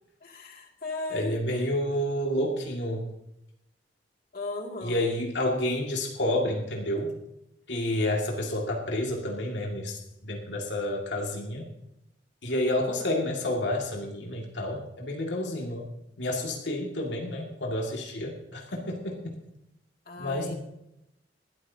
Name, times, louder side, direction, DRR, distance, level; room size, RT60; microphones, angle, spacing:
voice 1, 0.2-1.4 4.3-5.0 20.1-20.5, left 2 dB, 50° left, 1 dB, 2.4 m, -36 dB
voice 2, 1.1-3.0 4.8-7.1 7.7-11.7 12.4-15.9 16.2-19.4 20.2-20.5, left 1 dB, 75° left, 0 dB, 2.2 m, -29 dB
20.0 x 13.5 x 2.8 m, 0.84 s
head